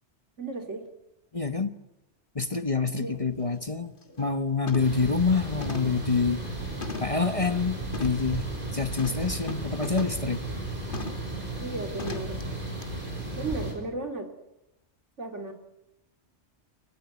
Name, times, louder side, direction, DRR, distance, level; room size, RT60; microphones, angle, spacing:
voice 1, 0.4-0.9 2.9-3.2 11.6-12.4 13.4-14.3 15.2-15.5, right 3 dB, 75° right, 6 dB, 3.1 m, -35 dB
voice 2, 1.3-1.7 2.3-6.4 7.0-8.4 8.7-10.4, left 4 dB, 30° left, 10 dB, 1.1 m, -27 dB
sound 1, 2.9-3.0 3.4-3.6 4.0-4.3 4.7-5.1 5.6-7.3 7.9-8.3 9.0-10.3 10.9-11.3 12.0-12.4 12.8-12.9, left 4 dB, 45° left, 2.0 m, -39 dB
sound 2, 4.8-13.7, right 2 dB, 45° right, 6.1 m, -34 dB
29.5 x 14.5 x 9.5 m, 0.88 s
omnidirectional pair, 1.2 m